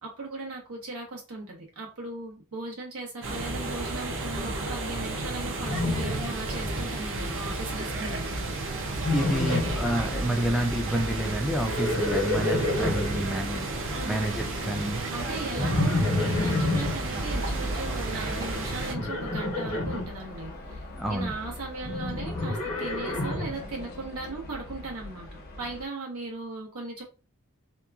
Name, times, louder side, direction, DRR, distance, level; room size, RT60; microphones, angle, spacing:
voice 1, 0.0-8.3 14.0-14.3 15.1-27.0, right 2 dB, 85° right, 1.0 m, -38 dB
sound 1, 3.2-18.9, right 2 dB, 60° right, 0.6 m, -32 dB
Livestock farm animals working animals, 5.6-6.8 7.1-7.6 8.9-9.9 11.5-13.3 15.6-17.0 18.9-20.1 21.8-23.6, left 2 dB, 80° left, 0.9 m, -28 dB
voice 2, 9.1-13.6 14.1-15.0 21.0-21.3, right 1 dB, ahead, 0.4 m, -29 dB
sound 2, 17.2-25.8, equal, 45° left, 0.6 m, -39 dB
2.8 x 2.2 x 2.4 m
head